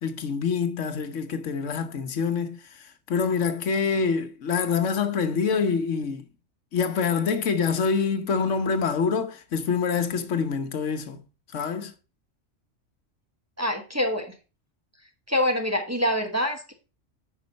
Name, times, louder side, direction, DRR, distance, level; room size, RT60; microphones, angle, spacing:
voice 1, 0.0-6.2 6.7-11.2 11.5-11.9, left 5 dB, 80° left, 1.3 m, -26 dB
voice 2, 13.6-14.3 15.3-16.7, left 1 dB, 15° right, 1.1 m, -25 dB
9.6 x 5.5 x 4.0 m
omnidirectional pair, 1.2 m